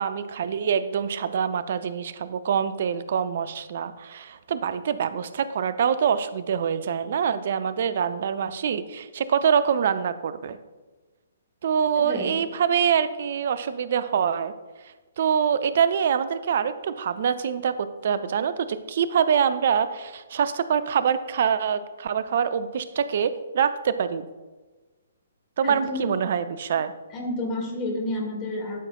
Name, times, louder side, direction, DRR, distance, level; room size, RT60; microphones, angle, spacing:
voice 1, 0.0-10.6 11.6-14.5 15.2-24.3 25.6-26.9, right 7 dB, 50° right, 13 dB, 0.4 m, -25 dB
voice 2, 11.9-12.4 25.6-26.1 27.1-28.8, left 1 dB, 25° left, 0 dB, 1.9 m, -30 dB
12.0 x 5.6 x 2.3 m, 1.3 s
figure-of-eight pair, 125°, 0 cm